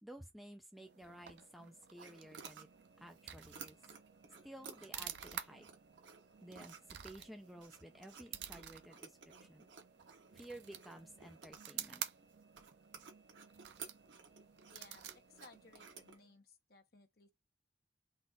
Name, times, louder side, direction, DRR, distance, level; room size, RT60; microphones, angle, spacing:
voice 1, 0.0-2.7 3.0-3.8 4.4-5.7 6.4-6.7 7.0-9.7 10.3-12.0, right 1 dB, ahead, 0.4 m, -54 dB
sound 1, 0.7-16.3, right 9 dB, 70° right, 0.6 m, -51 dB
sound 2, 2.0-16.1, right 6 dB, 85° right, 1.1 m, -57 dB
voice 2, 14.7-17.3, left 3 dB, 55° left, 0.9 m, -62 dB
4.0 x 2.5 x 3.8 m
head